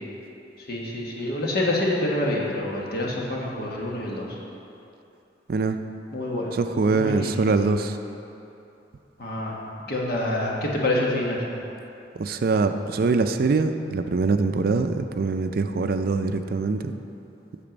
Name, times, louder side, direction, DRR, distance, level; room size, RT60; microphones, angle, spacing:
voice 1, 0.7-4.2 6.1-6.5 6.9-7.3 9.2-9.6 9.9-11.4, left 1 dB, 60° left, -3 dB, 1.5 m, -26 dB
voice 2, 6.5-8.0 12.2-16.9, right 3 dB, 55° right, 8 dB, 0.4 m, -23 dB
8.7 x 6.8 x 5.2 m, 2.8 s
head